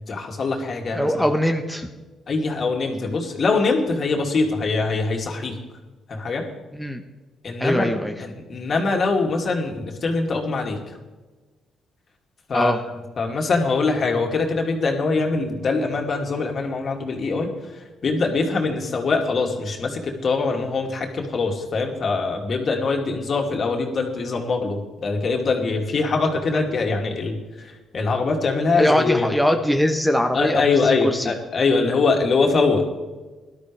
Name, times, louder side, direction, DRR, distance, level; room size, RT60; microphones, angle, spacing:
voice 1, 0.1-1.3 2.3-5.6 6.1-6.5 7.4-7.9 8.2-10.8 12.5-17.5 18.0-29.3 30.3-32.9, left 3 dB, 50° left, 2 dB, 2.5 m, -23 dB
voice 2, 0.9-1.9 6.7-7.0 7.6-8.1 12.5-12.8 28.8-31.3, equal, ahead, 5 dB, 1.0 m, -21 dB
18.5 x 12.0 x 3.4 m, 1.3 s
cardioid pair, 90°, 0 cm